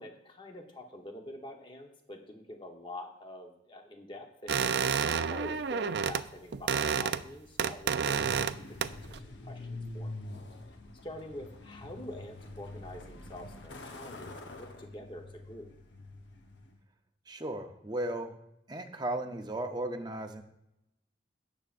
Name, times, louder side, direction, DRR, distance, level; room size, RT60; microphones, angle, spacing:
voice 1, 0.0-9.7 9.9-10.2 11.0-15.7, left 1 dB, 25° left, 3 dB, 1.0 m, -46 dB
sound 1, 4.5-6.2 6.5-7.3 7.6-8.5 8.8-9.2, right 6 dB, 60° right, 0.4 m, -29 dB
Truck, 8.0-16.8, left 2 dB, 70° left, 0.9 m, -45 dB
voice 2, 17.3-18.3 18.7-20.4, right 1 dB, 20° right, 5 dB, 0.7 m, -35 dB
17.5 x 7.2 x 2.5 m, 0.84 s
head